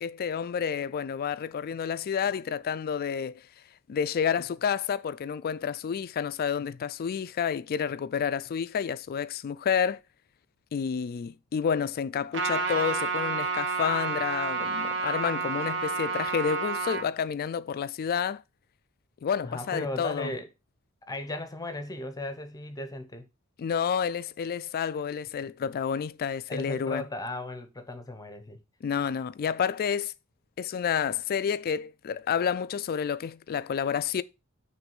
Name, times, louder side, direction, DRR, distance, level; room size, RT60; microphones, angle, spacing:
voice 1, 0.0-3.4 3.9-10.0 10.7-18.4 19.2-20.3 23.6-27.0 28.8-30.1 30.6-34.2, left 7 dB, 45° left, 0.3 m, -29 dB
Trumpet, 12.3-17.0, right 4 dB, 55° right, 1.0 m, -30 dB
voice 2, 19.4-20.5 21.1-23.3 26.5-28.6, left 1 dB, 15° left, 0.7 m, -36 dB
5.9 x 3.2 x 5.3 m
head